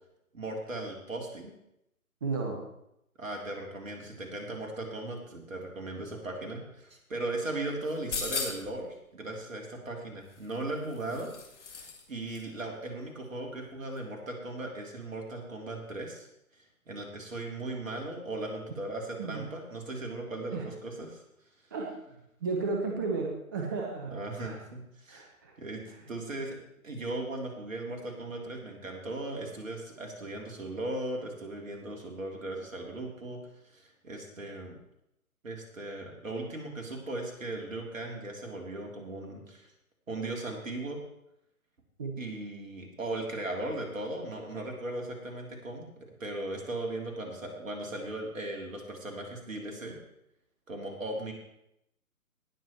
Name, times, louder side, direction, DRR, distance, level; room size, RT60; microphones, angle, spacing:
voice 1, 0.3-1.5 3.2-11.3 11.6-16.3 16.5-21.2 24.1-25.3 25.6-26.6 26.8-33.4 33.6-34.8 35.4-39.7 40.1-41.0 42.2-50.0 50.7-51.3, right 2 dB, 60° right, 1 dB, 3.4 m, -38 dB
voice 2, 2.2-2.7 19.2-19.5 20.5-20.7 21.7-24.6 25.1-25.5 42.0-42.1, right 4 dB, 15° right, 1 dB, 0.7 m, -34 dB
sound 1, 7.9-8.8 10.3-12.0 12.3-12.4, left 5 dB, 50° left, 2.3 m, -37 dB
18.5 x 7.0 x 4.4 m, 0.80 s
figure-of-eight pair, 140°, 45 cm